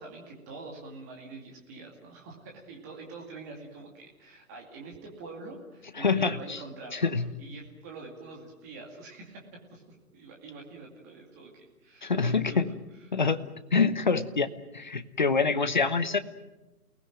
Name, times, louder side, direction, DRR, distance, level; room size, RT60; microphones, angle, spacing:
voice 1, 0.0-7.1 7.4-9.4 9.7-9.8 10.1-12.6, right 3 dB, 10° right, 0 dB, 2.3 m, -45 dB
voice 2, 6.0-6.6 6.9-7.3 12.0-12.7 13.1-13.4 13.7-14.5 14.7-16.2, left 4 dB, 30° left, 11 dB, 1.0 m, -25 dB
29.0 x 19.5 x 9.2 m, 1.0 s
hypercardioid pair, 175°, 46 cm